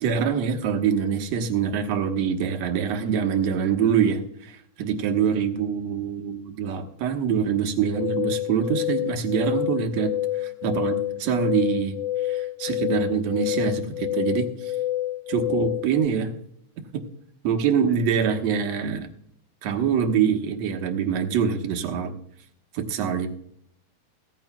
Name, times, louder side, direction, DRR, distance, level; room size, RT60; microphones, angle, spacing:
voice 1, 0.0-10.1 10.4-12.0 12.3-14.7 15.3-16.3 16.9-17.0 17.4-19.1 19.6-22.1 22.7-23.3, right 7 dB, 65° right, 4 dB, 2.3 m, -25 dB
sound 1, 7.8-16.1, left 14 dB, 70° left, 2.1 m, -28 dB
16.5 x 15.0 x 2.2 m, 0.68 s
omnidirectional pair, 3.6 m